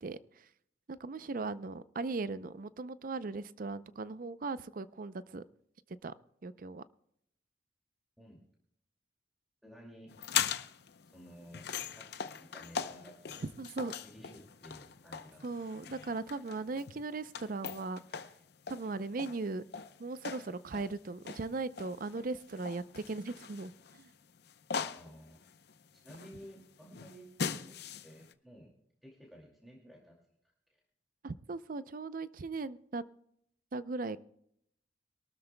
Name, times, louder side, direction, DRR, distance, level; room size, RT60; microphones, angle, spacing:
voice 1, 0.0-0.4 0.9-5.4 6.0-6.1 6.4-6.8 13.4-13.9 15.4-18.0 18.7-19.6 20.0-23.7 24.0-24.1 31.2-33.0 33.7-34.2, right 3 dB, 50° right, 15 dB, 0.5 m, -38 dB
voice 2, 9.6-10.1 11.1-11.7 12.0-13.4 13.8-15.5 24.9-25.4 25.9-28.7 29.0-30.2 30.7-30.8, equal, ahead, -3 dB, 2.3 m, -54 dB
sound 1, 10.1-28.3, left 7 dB, 65° left, 0.7 m, -41 dB
23.0 x 12.5 x 2.2 m, 0.73 s
head